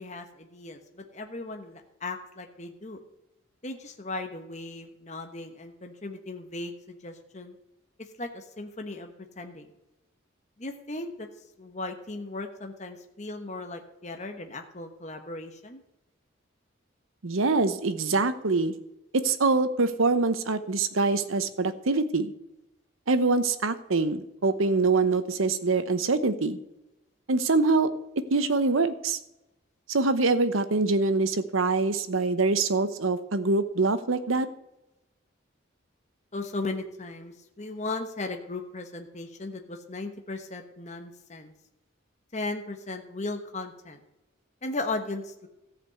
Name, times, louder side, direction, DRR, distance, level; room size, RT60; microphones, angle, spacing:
voice 1, 0.0-3.0 3.6-7.5 8.2-9.7 10.6-11.3 11.6-15.8 36.3-41.5 42.3-44.0 44.6-45.5, left 2 dB, 35° left, 5 dB, 1.1 m, -37 dB
voice 2, 17.2-18.7 19.1-22.3 23.1-26.6 27.3-27.9 28.3-29.2 29.9-34.5, right 3 dB, 85° right, 12 dB, 0.9 m, -24 dB
14.0 x 5.2 x 7.8 m, 0.91 s
head